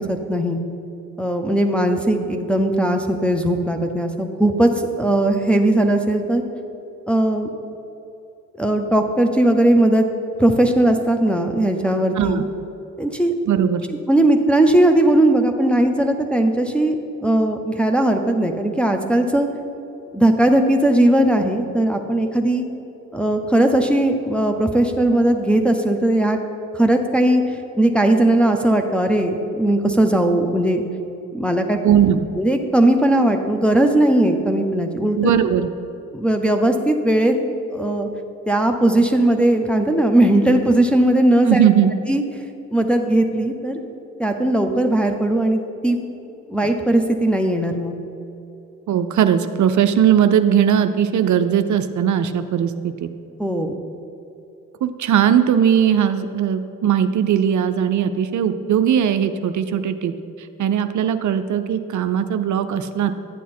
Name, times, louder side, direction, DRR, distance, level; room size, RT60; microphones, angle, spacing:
voice 1, 0.1-0.6 1.2-6.4 7.1-7.5 8.6-10.0 10.4-12.4 13.0-13.3 14.1-17.0 17.2-19.5 20.1-22.6 23.1-26.4 26.7-30.8 31.3-31.8 32.4-35.3 36.1-37.3 37.7-38.1 38.5-41.6 42.1-42.2 42.7-43.8 44.2-46.0 46.5-47.9 53.4-53.7, right 1 dB, 5° left, 3 dB, 1.0 m, -18 dB
voice 2, 13.5-13.8 31.8-32.3 35.2-35.7 41.5-41.9 48.9-53.1 54.8-63.1, right 9 dB, 50° right, 9 dB, 0.7 m, -19 dB
11.5 x 9.1 x 4.4 m, 2.8 s
hypercardioid pair, 45°, 39 cm